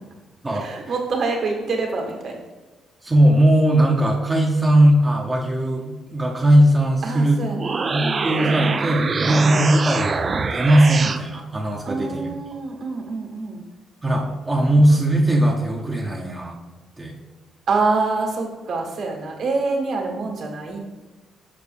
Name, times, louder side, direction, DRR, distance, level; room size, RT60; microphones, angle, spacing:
voice 1, 0.5-2.4 7.0-8.7 9.2-9.4 11.8-13.6 17.7-20.8, right 3 dB, 65° right, 0 dB, 1.8 m, -26 dB
voice 2, 3.0-7.4 7.9-12.4 14.0-16.6 17.0-17.2, right 1 dB, 20° right, 0 dB, 0.8 m, -18 dB
sound 1, 7.4-11.2, right 4 dB, 40° right, 0.4 m, -24 dB
6.7 x 6.1 x 3.4 m, 1.2 s
cardioid pair, 90°, 0 cm